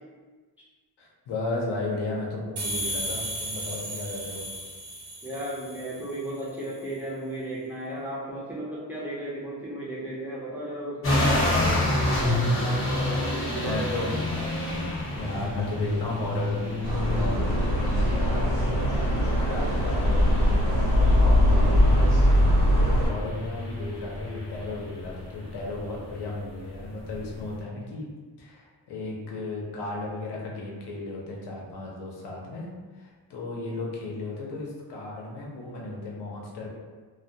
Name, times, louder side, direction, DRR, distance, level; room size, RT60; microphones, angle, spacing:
voice 1, 1.0-4.4 12.8-13.2 13.6-14.4 15.1-28.1 28.4-32.7 32.9-36.7, left 2 dB, 80° left, -3 dB, 0.7 m, -35 dB
sound 1, 2.6-6.1, right 1 dB, 80° right, 0.8 m, -34 dB
voice 2, 5.2-14.1, right 1 dB, 5° right, -8 dB, 0.4 m, -35 dB
sound 2, 11.0-27.6, left 1 dB, 30° left, 0.7 m, -30 dB
sound 3, 16.8-23.1, equal, 50° right, 0.6 m, -21 dB
2.1 x 2.1 x 2.7 m, 1.4 s
wide cardioid pair, 155°, 40 cm